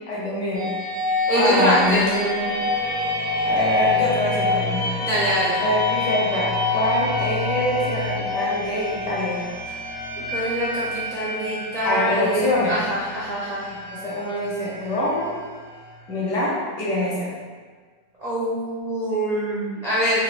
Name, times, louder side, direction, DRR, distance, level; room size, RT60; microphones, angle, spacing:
voice 1, 0.1-0.7 1.3-2.5 3.4-4.9 5.6-9.4 11.8-12.8 13.9-15.3 16.1-17.3, left 1 dB, 75° left, -5 dB, 1.5 m, -24 dB
sound 1, 0.5-16.2, left 2 dB, 40° left, 0.6 m, -27 dB
voice 2, 1.3-2.0 5.0-5.6 10.3-13.7 18.2-20.2, equal, 75° right, -8 dB, 0.3 m, -24 dB
4.3 x 2.5 x 3.2 m, 1.5 s
omnidirectional pair, 1.9 m